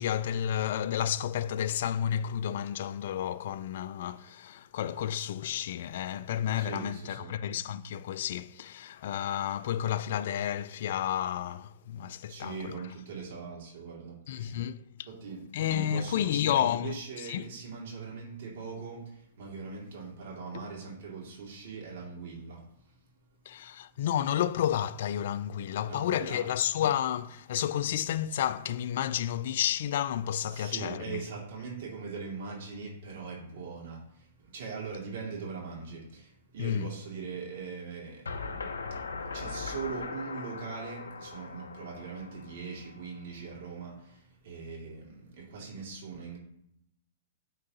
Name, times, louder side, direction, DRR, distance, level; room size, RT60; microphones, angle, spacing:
voice 1, 0.0-12.7 14.3-15.1 15.5-16.9 17.3-17.5 20.5-20.7 23.5-31.2 36.6-36.9, left 10 dB, 60° left, 0.3 m, -31 dB
voice 2, 6.6-7.3 12.3-14.6 15.1-22.9 25.8-26.4 30.5-38.6 38.9-46.4, right 5 dB, 60° right, 2.3 m, -41 dB
sound 1, 38.3-43.2, left 4 dB, 85° left, 0.7 m, -40 dB
9.5 x 3.8 x 2.8 m
hypercardioid pair, 125°, 0 cm